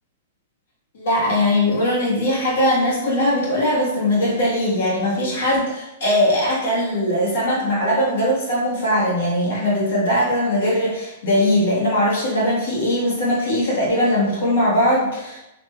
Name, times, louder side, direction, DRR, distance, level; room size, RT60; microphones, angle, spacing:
voice 1, 0.9-15.4, left 1 dB, 70° left, -5 dB, 1.3 m, -20 dB
3.2 x 2.8 x 2.3 m, 0.91 s
hypercardioid pair, 145°, 0 cm